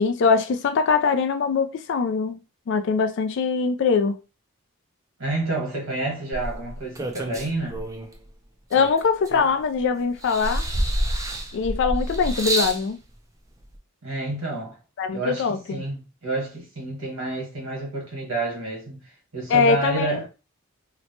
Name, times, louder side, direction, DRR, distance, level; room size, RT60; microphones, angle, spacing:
voice 1, 0.0-2.4 2.7-4.2 8.7-10.7 11.5-13.0 15.0-15.8 19.5-20.2, left 5 dB, 60° left, 0.3 m, -22 dB
voice 2, 5.2-7.8 14.0-14.8 15.1-19.0 19.3-20.3, right 2 dB, 85° right, 1.4 m, -29 dB
sound 1, 6.3-8.1 8.7-9.8 10.2-12.8 13.7-13.8, right 1 dB, 15° right, 0.3 m, -28 dB
2.9 x 2.1 x 2.7 m
head